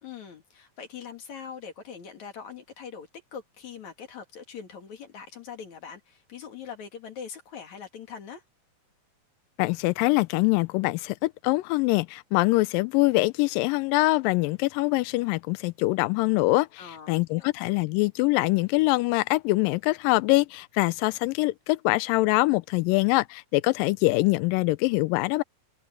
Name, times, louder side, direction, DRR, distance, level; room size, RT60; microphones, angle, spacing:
voice 1, 0.0-8.4 16.8-17.5, left 7 dB, 55° left, 3.3 m, -42 dB
voice 2, 9.6-16.8 17.1-25.4, left 21 dB, 80° left, 2.2 m, -24 dB
omnidirectional pair, 4.1 m